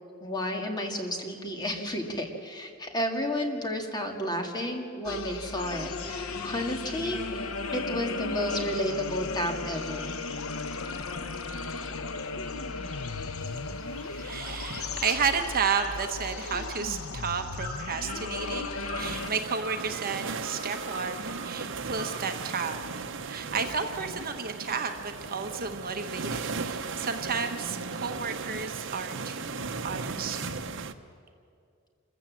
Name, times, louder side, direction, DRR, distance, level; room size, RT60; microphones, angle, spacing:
voice 1, 0.2-7.5 7.7-10.1, equal, 20° left, 3 dB, 2.2 m, -32 dB
sound 1, 5.0-19.3, left 3 dB, 90° left, 0.9 m, -35 dB
sound 2, 8.6-8.9 9.2-10.2 10.4-11.4 11.8-14.6 15.0-15.5 15.8-16.8 17.6-19.1 19.4-21.5 21.9-22.7, right 1 dB, 55° left, 7.5 m, -45 dB
voice 2, 13.5-30.4, right 5 dB, 45° right, 6 dB, 1.1 m, -32 dB
sound 3, 19.0-30.9, right 4 dB, 65° right, 0.9 m, -36 dB
27.0 x 14.5 x 7.4 m, 2.4 s
head